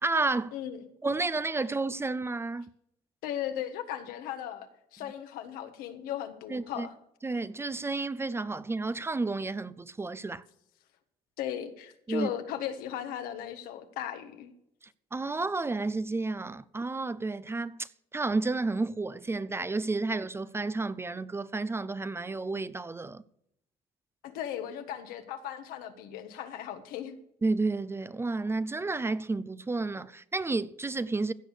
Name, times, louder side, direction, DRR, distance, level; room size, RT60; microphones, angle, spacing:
voice 1, 0.0-0.5 1.0-2.7 6.5-6.9 7.2-10.4 12.1-12.3 15.1-23.2 27.4-31.3, right 3 dB, 15° right, 0.5 m, -31 dB
voice 2, 0.5-0.9 3.2-6.9 11.4-14.5 24.2-27.1, left 10 dB, 85° left, 1.5 m, -37 dB
15.5 x 6.4 x 6.5 m
cardioid pair, 95°, 15 cm